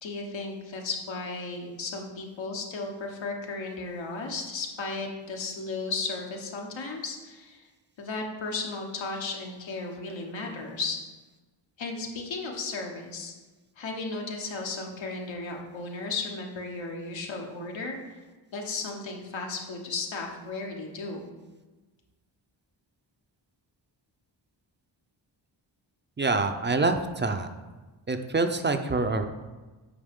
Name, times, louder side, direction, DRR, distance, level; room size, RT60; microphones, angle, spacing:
voice 1, 0.0-7.7 8.0-11.0 11.8-13.3 13.8-18.2 18.5-21.2, left 3 dB, 85° left, 1 dB, 1.2 m, -35 dB
voice 2, 26.2-27.5 28.1-29.3, right 3 dB, 25° right, 7 dB, 0.5 m, -26 dB
8.5 x 4.8 x 3.6 m, 1.2 s
wide cardioid pair, 100°, 45 cm